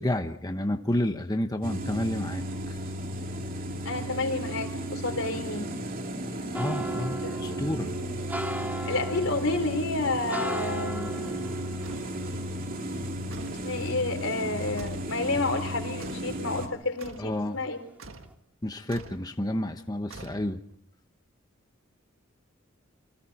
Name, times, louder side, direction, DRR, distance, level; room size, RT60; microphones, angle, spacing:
voice 1, 0.0-2.8 6.5-7.9 17.2-17.6 18.6-20.6, left 1 dB, 20° left, 6 dB, 1.1 m, -30 dB
sound 1, 1.6-16.7, equal, 45° right, 2.7 m, -35 dB
voice 2, 3.9-5.7 7.2-8.0 8.8-11.4 13.6-17.8, left 2 dB, 75° left, 6 dB, 4.0 m, -30 dB
sound 2, 6.5-15.8 16.1-17.2 17.5-17.9 18.2-18.3, right 2 dB, 10° right, 2.6 m, -37 dB
sound 3, 11.8-12.2 13.3-13.7 14.8-15.2 16.0-16.4 17.0-17.3 18.0-18.4 18.9-19.3 20.1-20.7, right 3 dB, 75° right, 1.8 m, -45 dB
28.5 x 25.5 x 4.3 m, 0.63 s
head